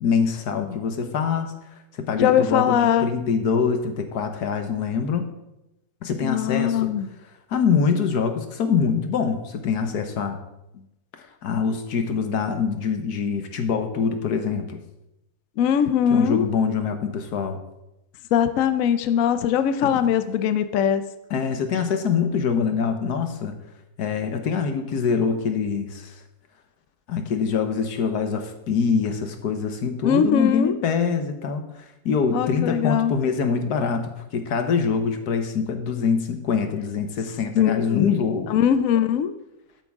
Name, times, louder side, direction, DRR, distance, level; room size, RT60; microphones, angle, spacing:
voice 1, 0.0-1.5 1.9-5.3 6.0-6.9 7.5-10.4 11.2-14.8 16.1-17.6 19.8-20.0 21.3-23.5 24.0-26.1 27.1-38.6, left 6 dB, 90° left, 7 dB, 1.6 m, -24 dB
voice 2, 2.2-3.1 6.2-7.1 15.6-16.5 18.3-21.0 30.0-30.7 32.3-33.1 37.6-38.2 38.5-39.3, left 9 dB, 65° left, 10 dB, 1.0 m, -21 dB
12.5 x 8.9 x 3.6 m, 0.89 s
omnidirectional pair, 1.6 m